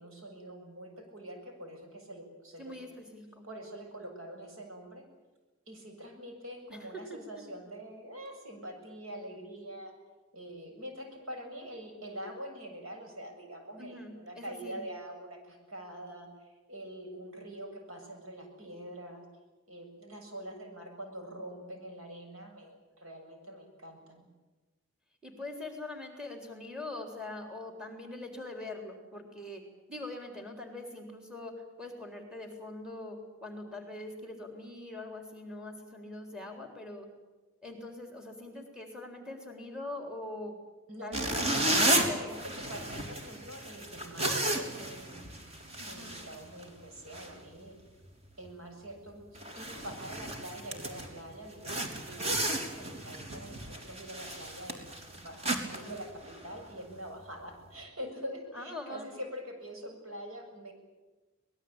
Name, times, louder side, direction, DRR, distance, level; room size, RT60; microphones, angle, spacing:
voice 1, 0.0-2.7 3.4-5.0 5.7-9.9 10.3-19.3 19.7-24.3 40.9-47.7 48.4-60.7, equal, 85° right, 4 dB, 7.5 m, -45 dB
voice 2, 2.6-3.5 6.7-7.5 13.8-14.8 25.2-29.6 29.9-31.5 31.8-37.1 37.6-40.6 41.0-42.6 45.8-46.2 55.7-55.9 58.5-59.1, left 2 dB, 5° right, 4 dB, 3.8 m, -43 dB
sound 1, 41.1-46.8 47.1-47.3 47.8-48.1 48.4-48.5 49.0-49.1 49.4-51.2 51.6-56.7, right 1 dB, 30° right, 3.4 m, -33 dB
25.0 x 20.0 x 8.9 m, 1.2 s
head